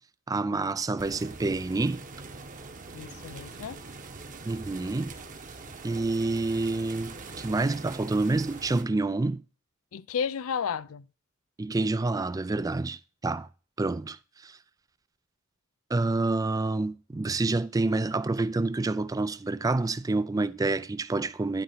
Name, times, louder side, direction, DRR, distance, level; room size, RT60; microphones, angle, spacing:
voice 1, 0.3-2.0 4.4-5.1 5.8-9.4 11.6-13.5 13.8-14.6 15.9-21.6, right 3 dB, 15° right, 0.3 m, -28 dB
sound 1, 1.0-8.8, right 3 dB, 35° right, 1.1 m, -43 dB
voice 2, 2.9-3.8 9.9-11.1, left 7 dB, 70° left, 0.4 m, -32 dB
11.5 x 4.1 x 5.6 m
head